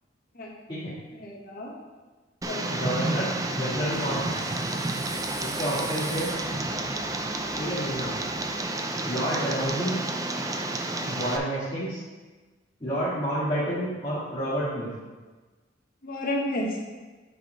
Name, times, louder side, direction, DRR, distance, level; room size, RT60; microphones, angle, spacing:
voice 1, 1.2-1.7 2.5-2.8 11.0-11.1 16.0-16.8, left 1 dB, 50° left, -2 dB, 1.2 m, -31 dB
Tick, 2.4-11.4, right 2 dB, 20° right, 0.4 m, -30 dB
voice 2, 2.7-4.4 5.4-6.3 7.6-8.1 9.0-10.0 11.1-12.0 12.8-14.9, equal, 25° left, -13 dB, 1.8 m, -29 dB
sound 1, 3.7-8.7, right 2 dB, 50° right, 1.5 m, -45 dB
9.1 x 4.1 x 3.8 m, 1.3 s
head